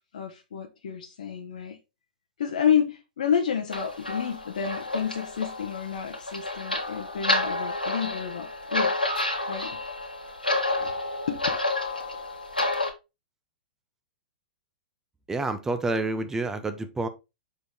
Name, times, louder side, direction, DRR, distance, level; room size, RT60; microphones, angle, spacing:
voice 1, 0.1-1.8 2.4-9.1 9.5-9.8 10.8-10.9 11.3-11.4, left 8 dB, 60° left, 1.0 m, -29 dB
sound 1, 3.7-12.9, left 2 dB, 85° left, 1.8 m, -30 dB
voice 2, 15.3-17.1, right 2 dB, 10° right, 0.8 m, -28 dB
6.7 x 4.6 x 3.6 m
figure-of-eight pair, 105°, 5 cm